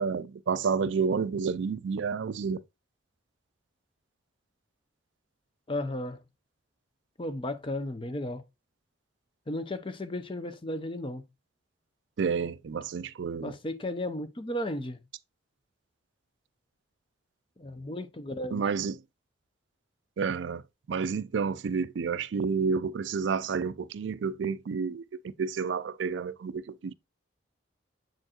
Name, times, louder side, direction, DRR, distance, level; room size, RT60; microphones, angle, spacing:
voice 1, 0.0-2.6 12.2-13.5 18.5-19.0 20.2-20.6 20.9-26.9, right 5 dB, 70° right, 0.4 m, -30 dB
voice 2, 5.7-6.2 7.2-8.4 9.5-11.2 13.4-15.0 17.6-18.6, left 1 dB, 25° left, 0.6 m, -34 dB
7.6 x 4.4 x 2.9 m
head